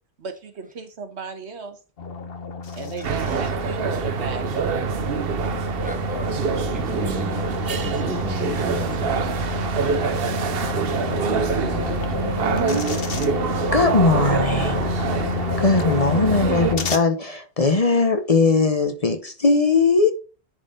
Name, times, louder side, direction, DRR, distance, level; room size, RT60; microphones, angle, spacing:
voice 1, 0.2-1.8 2.7-4.5, right 4 dB, 90° right, 1.5 m, -35 dB
sound 1, 2.0-17.0, left 4 dB, 60° left, 1.2 m, -29 dB
voice 2, 3.0-3.4 5.8-6.3 6.7-9.1, right 1 dB, 10° right, 1.2 m, -33 dB
sound 2, 3.0-16.8, right 6 dB, 65° right, 1.0 m, -25 dB
voice 3, 10.7-13.0, right 4 dB, 25° right, 0.9 m, -33 dB
voice 4, 13.7-14.8 15.6-20.1, left 4 dB, 35° left, 0.9 m, -19 dB
10.0 x 4.2 x 3.9 m
omnidirectional pair, 1.1 m